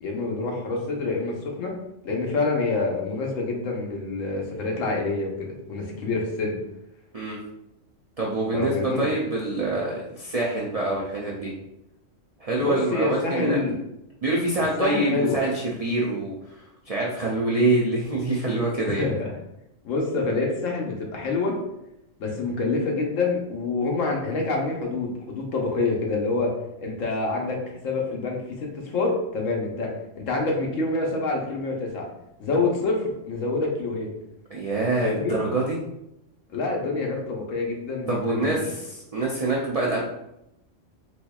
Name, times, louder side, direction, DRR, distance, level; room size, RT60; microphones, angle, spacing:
voice 1, 0.0-1.8 2.0-6.6 8.5-9.1 12.6-13.8 14.8-15.4 19.0-19.3 19.8-21.5 22.2-26.5 26.8-29.9 30.2-32.1 32.4-34.2 35.0-35.3 36.5-38.7, left 3 dB, 75° left, 0 dB, 1.1 m, -27 dB
voice 2, 8.2-11.5 12.4-13.6 14.2-16.4 16.9-19.1 34.5-35.8 38.1-40.0, right 2 dB, 75° right, -3 dB, 0.3 m, -25 dB
4.2 x 2.8 x 2.3 m, 0.85 s
omnidirectional pair, 1.4 m